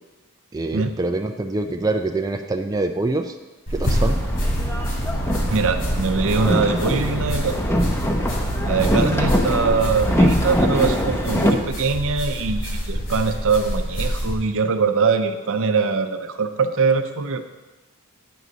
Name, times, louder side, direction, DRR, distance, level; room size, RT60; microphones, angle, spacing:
voice 1, 0.5-3.4 3.7-4.2 8.7-8.9, right 2 dB, 15° right, 4 dB, 0.3 m, -25 dB
sound 1, 3.7-14.4, equal, 60° left, 2.8 m, -27 dB
Boat Water vehicle, 3.9-11.5, equal, 10° left, 0.7 m, -22 dB
voice 2, 5.5-7.7 8.6-17.4, right 4 dB, 65° right, 8 dB, 0.6 m, -22 dB
9.2 x 4.1 x 6.2 m, 1.1 s
head